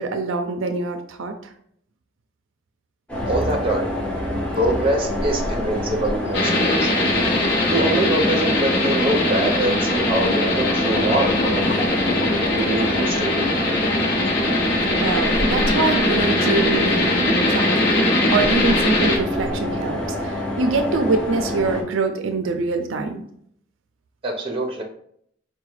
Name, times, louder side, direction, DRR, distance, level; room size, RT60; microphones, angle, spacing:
voice 1, 0.0-1.3 15.0-23.2, right 3 dB, 80° right, 6 dB, 0.4 m, -24 dB
sound 1, 3.1-21.8, left 1 dB, 5° left, 0.7 m, -27 dB
voice 2, 3.3-3.9 4.6-6.9 7.7-11.7 12.5-13.5 24.2-24.8, right 1 dB, 30° right, 1 dB, 0.7 m, -24 dB
sound 2, 6.3-19.2, left 1 dB, 60° left, 0.8 m, -21 dB
sound 3, 10.2-12.5, left 2 dB, 40° left, 0.4 m, -27 dB
4.6 x 2.2 x 3.1 m, 0.68 s
head